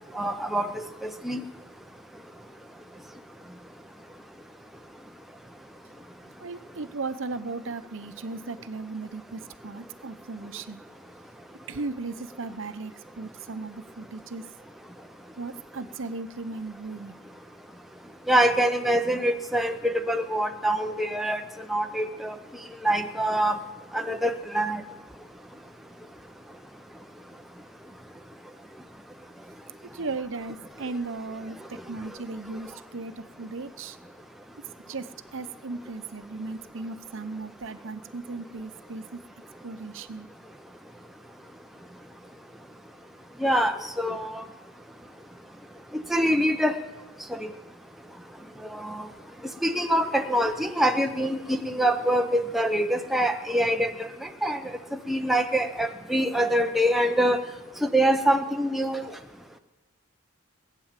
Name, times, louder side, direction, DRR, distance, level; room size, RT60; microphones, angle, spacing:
voice 1, 0.1-1.4 18.3-21.4 21.7-22.4 22.8-23.6 23.9-24.8 43.4-44.4 45.9-46.7 47.3-47.5 48.7-49.1 49.6-54.6 55.1-57.4 57.8-59.0, right 1 dB, ahead, 5 dB, 0.6 m, -25 dB
voice 2, 6.2-10.8 11.7-14.4 15.4-17.2 29.9-34.0 34.9-39.2 39.6-40.3, right 3 dB, 65° right, 11 dB, 0.8 m, -36 dB
19.0 x 9.1 x 7.4 m, 1.2 s
head